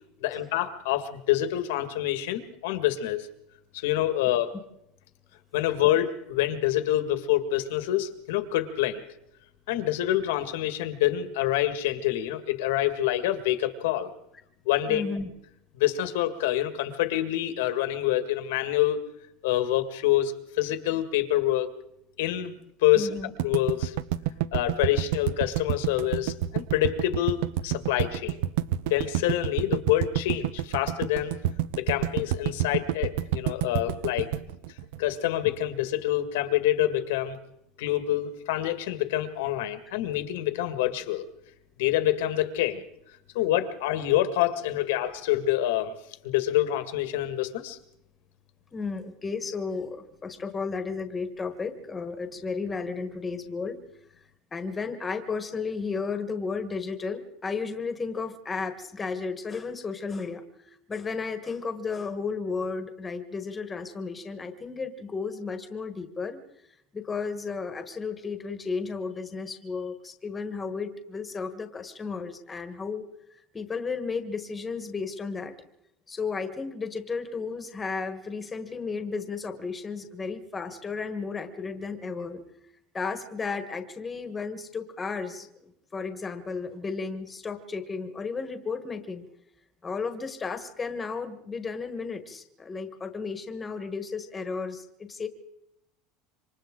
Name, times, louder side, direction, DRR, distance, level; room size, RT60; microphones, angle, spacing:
voice 1, 0.2-3.3 3.7-4.5 5.5-9.0 9.7-14.1 14.7-15.0 15.8-19.0 19.4-21.7 22.2-22.5 22.8-23.1 23.4-24.0 24.5-28.4 28.8-31.3 31.8-34.3 35.0-37.4 37.8-41.3 41.8-42.8 43.3-46.0 46.2-47.8, left 13 dB, 90° left, 9 dB, 1.9 m, -26 dB
voice 2, 14.9-15.3 22.9-23.3 48.7-53.8 54.5-60.4 60.9-66.4 66.9-73.0 73.5-75.5 76.1-82.4 82.9-89.2 89.8-95.3, left 4 dB, 10° left, 8 dB, 1.3 m, -33 dB
sound 1, 23.4-35.6, right 12 dB, 70° right, 0.7 m, -28 dB
27.0 x 25.0 x 3.8 m, 0.80 s
cardioid pair, 175°, 0 cm